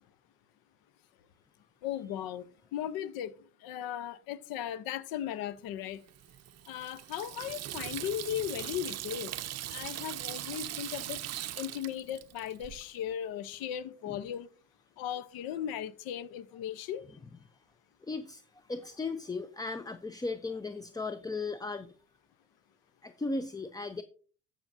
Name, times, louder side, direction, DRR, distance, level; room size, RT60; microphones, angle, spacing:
voice 1, 1.8-2.4 2.7-3.3 3.6-6.0 6.7-9.3 9.7-11.2 11.6-14.5 15.0-17.0, left 10 dB, 65° left, 0.8 m, -37 dB
Water tap faucet / Sink (filling or washing), 6.1-12.8, right 13 dB, 40° right, 0.6 m, -40 dB
voice 2, 18.1-21.9 23.0-24.0, left 3 dB, 10° left, 0.4 m, -36 dB
14.0 x 6.0 x 2.6 m
supercardioid pair, 80°, 38 cm